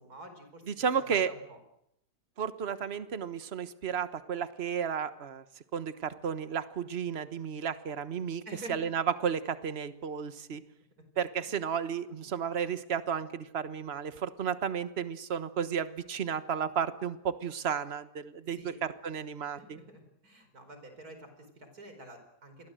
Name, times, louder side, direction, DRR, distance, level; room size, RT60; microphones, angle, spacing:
voice 1, 0.0-1.6 8.5-8.9 18.6-18.8 19.6-22.7, right 1 dB, 65° right, 7 dB, 5.2 m, -48 dB
voice 2, 0.7-1.3 2.4-5.4 5.7-8.4 8.7-10.6 11.2-19.8, right 7 dB, 40° right, 12 dB, 1.4 m, -33 dB
27.5 x 22.5 x 7.8 m, 0.78 s
omnidirectional pair, 1.7 m